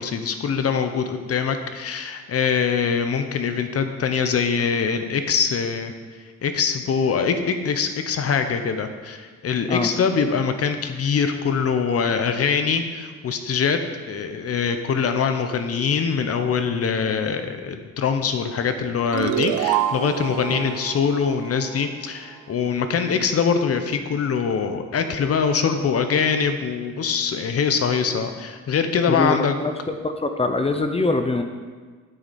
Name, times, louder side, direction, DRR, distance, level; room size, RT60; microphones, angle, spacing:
voice 1, 0.0-5.9 6.4-13.8 14.1-29.6, left 6 dB, 50° left, 7 dB, 1.0 m, -23 dB
sound 1, 19.1-22.3, right 12 dB, 85° right, 0.5 m, -27 dB
voice 2, 29.1-31.4, left 3 dB, 20° left, 6 dB, 0.7 m, -24 dB
9.0 x 7.7 x 4.3 m, 1.5 s
cardioid pair, 90°, 30 cm